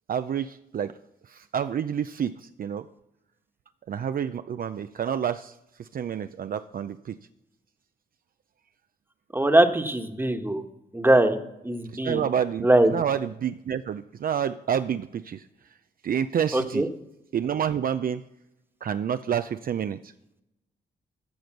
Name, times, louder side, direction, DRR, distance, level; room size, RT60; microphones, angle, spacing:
voice 1, 0.1-0.9 1.3-2.9 3.9-7.2 11.9-15.5 16.0-16.9 17.3-18.2 18.8-20.1, right 8 dB, 50° right, 11 dB, 0.5 m, -29 dB
voice 2, 9.3-10.6 10.9-11.4 11.6-12.2 12.6-12.9 16.5-16.9, right 1 dB, 10° right, 7 dB, 1.4 m, -21 dB
14.5 x 5.1 x 6.1 m, 0.87 s
supercardioid pair, 60°, 18 cm